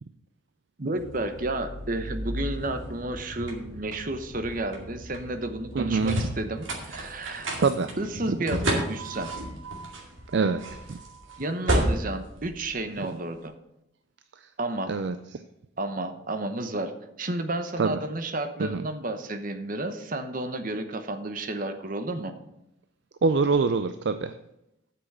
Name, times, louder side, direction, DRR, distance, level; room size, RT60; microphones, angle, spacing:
voice 1, 0.8-7.5 8.0-9.3 11.4-13.5 14.6-14.9 15.8-16.9 17.2-22.3, right 2 dB, 45° right, 8 dB, 0.9 m, -31 dB
sound 1, 1.0-13.3, right 1 dB, 85° right, 2.3 m, -33 dB
voice 2, 5.7-6.2 7.6-7.9 8.3-8.4 10.3-11.0 14.4-14.5 14.9-15.4 17.8-18.0 18.6-18.8 23.2-24.4, right 4 dB, 60° right, 10 dB, 0.4 m, -25 dB
8.1 x 6.1 x 7.3 m, 0.85 s
head